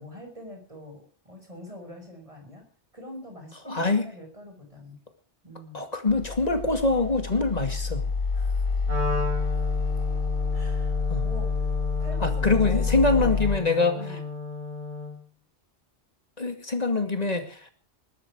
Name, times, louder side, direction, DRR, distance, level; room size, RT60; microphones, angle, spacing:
voice 1, 0.0-2.7 2.9-5.0 5.4-5.8 8.3-8.8 9.5-9.6 10.5-10.9 11.2-11.7 12.0-13.5 13.9-14.3, left 1 dB, 30° right, 3 dB, 6.2 m, -43 dB
voice 2, 3.7-4.0 5.7-8.0 11.1-11.2 12.2-14.0 16.4-17.6, left 3 dB, 35° left, 7 dB, 2.4 m, -24 dB
sound 1, 6.1-13.6, left 5 dB, 55° left, 1.2 m, -28 dB
Wind instrument woodwind instrument, 8.9-15.2, left 2 dB, 85° right, 5.5 m, -34 dB
21.0 x 12.0 x 4.9 m, 0.41 s
omnidirectional pair, 1.1 m